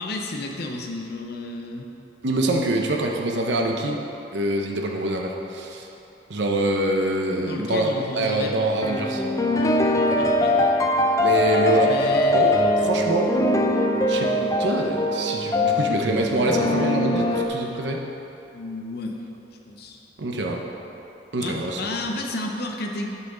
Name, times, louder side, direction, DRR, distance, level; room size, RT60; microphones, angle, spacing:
voice 1, 0.0-1.8 7.5-8.5 10.2-10.6 11.9-12.4 18.5-19.2 19.7-20.0 21.4-23.1, left 2 dB, 60° left, 1 dB, 0.7 m, -32 dB
voice 2, 2.2-4.0 4.3-5.9 6.3-9.2 11.2-13.3 14.1-18.0 20.2-20.6 21.3-22.0, right 1 dB, 75° right, 1 dB, 0.8 m, -25 dB
sound 1, 8.8-17.5, left 1 dB, 20° left, 0.5 m, -22 dB
11.0 x 5.9 x 3.9 m, 2.9 s
head